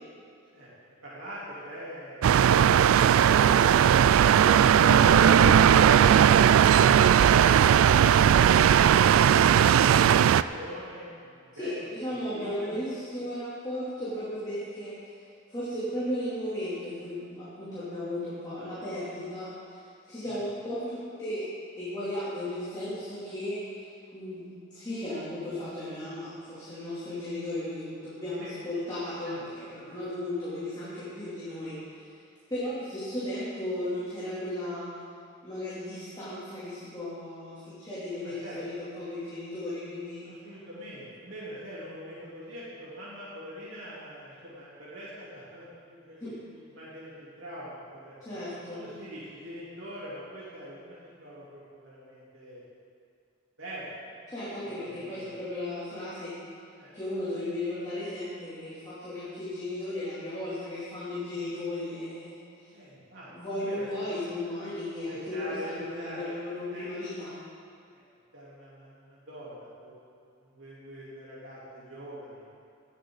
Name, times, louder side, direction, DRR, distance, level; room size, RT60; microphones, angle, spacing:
voice 1, 1.0-2.3 9.3-11.7 12.1-12.8 20.2-20.4 28.3-28.5 29.2-29.4 29.8-29.9 38.1-38.6 40.2-46.2 46.5-48.1 48.7-52.6 53.6-54.1 54.7-55.3 56.8-56.9 62.7-63.3 63.6-64.0 65.1-66.3 66.7-66.8 67.9-68.0 68.3-69.9 70.4-72.5, equal, 70° right, -8 dB, 3.4 m, -43 dB
sound 1, 2.2-10.4, right 9 dB, 85° right, 0.3 m, -18 dB
voice 2, 4.7-5.6 11.5-15.0 15.5-19.8 20.1-21.5 21.8-32.1 32.5-34.9 35.4-40.3 46.2-46.4 48.2-48.8 54.3-56.3 56.9-62.3 62.6-62.7 63.3-67.3, left 1 dB, 20° left, -12 dB, 3.0 m, -35 dB
18.5 x 8.3 x 4.0 m, 2.5 s
head